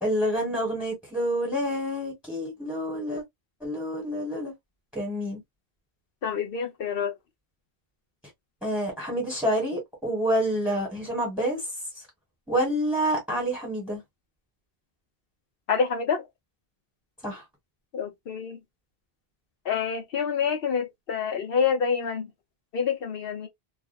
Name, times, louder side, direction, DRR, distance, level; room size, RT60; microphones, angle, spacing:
voice 1, 0.0-3.2 3.6-4.5 4.9-5.4 8.6-11.6 12.5-14.0 17.2-17.4, equal, ahead, 1.3 m, -28 dB
voice 2, 6.2-7.1 15.7-16.3 17.9-18.6 19.6-22.3 22.7-23.5, left 6 dB, 65° left, 0.9 m, -27 dB
2.4 x 2.4 x 2.5 m
omnidirectional pair, 1.0 m